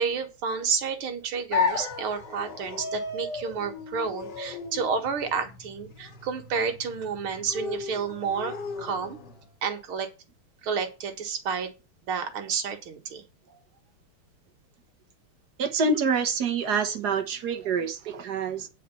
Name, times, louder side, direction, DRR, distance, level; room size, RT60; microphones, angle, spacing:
voice 1, 0.0-9.2 9.6-10.1 10.6-11.7 12.1-13.2, right 6 dB, 75° right, 2.3 m, -30 dB
sound 1, 1.5-9.5, left 5 dB, 55° left, 2.2 m, -34 dB
voice 2, 15.6-18.7, right 4 dB, 55° right, 1.5 m, -26 dB
9.0 x 4.8 x 7.0 m
omnidirectional pair, 2.4 m